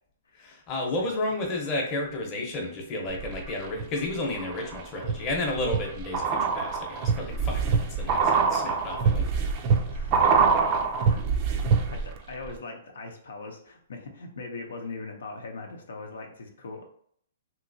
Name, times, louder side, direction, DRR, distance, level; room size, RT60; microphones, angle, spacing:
voice 1, 0.4-9.3, left 2 dB, 25° left, -1 dB, 0.8 m, -32 dB
sound 1, 3.1-3.8 4.3-12.2 12.4-12.5, right 5 dB, 30° right, 0.4 m, -25 dB
voice 2, 8.0-8.4 9.9-10.5 10.7-11.4 11.7-16.9, left 3 dB, 85° left, 2 dB, 0.6 m, -41 dB
3.0 x 2.8 x 2.6 m, 0.64 s
hypercardioid pair, 155°, 0 cm